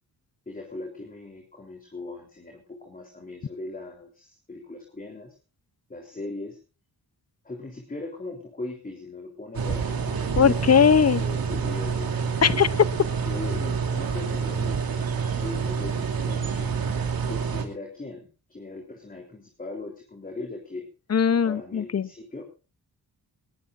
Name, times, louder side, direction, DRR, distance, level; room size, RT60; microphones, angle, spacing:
voice 1, 0.5-5.3 5.9-6.6 7.4-10.7 11.2-12.1 13.2-15.0 15.4-16.7 17.3-20.9 21.4-22.5, left 2 dB, 20° left, 2 dB, 3.7 m, -39 dB
sound 1, 9.5-17.7, right 6 dB, 65° right, 2.7 m, -27 dB
voice 2, 10.4-11.2 12.4-12.7 21.1-22.1, left 7 dB, 40° left, 17 dB, 0.8 m, -19 dB
20.5 x 18.5 x 2.6 m, 0.34 s
wide cardioid pair, 105°, 38 cm